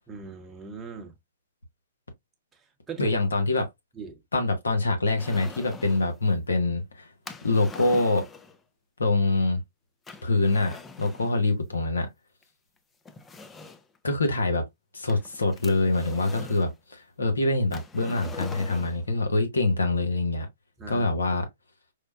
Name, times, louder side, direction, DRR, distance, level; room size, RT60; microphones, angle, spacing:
voice 1, 0.1-1.1 2.5-2.6 2.9-3.2 4.0-4.2 20.8-21.1, right 5 dB, 15° right, 0.8 m, -39 dB
voice 2, 3.0-3.7 4.3-7.1 7.4-8.3 9.0-9.6 10.2-12.1 14.0-14.6 14.9-20.5 20.9-21.4, left 2 dB, 85° left, 1.0 m, -25 dB
sound 1, 5.2-6.1 7.3-8.6 10.1-11.4 12.4-12.5 13.1-14.0 15.1-16.7 17.7-19.1, left 4 dB, 15° left, 0.4 m, -43 dB
4.8 x 2.1 x 2.3 m
hypercardioid pair, 120°, 0 cm